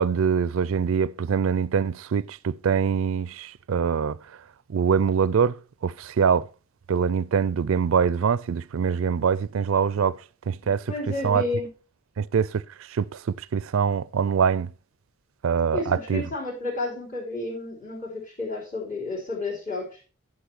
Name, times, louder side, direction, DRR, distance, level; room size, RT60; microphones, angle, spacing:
voice 1, 0.0-4.2 4.7-5.6 5.8-6.5 6.9-10.2 10.5-10.9 11.2-11.4 12.2-12.6 12.9-14.7 15.4-16.2, right 6 dB, 70° right, 0.4 m, -24 dB
voice 2, 10.6-11.7 15.7-20.0, left 2 dB, 40° left, 3.6 m, -31 dB
10.0 x 5.4 x 4.4 m
head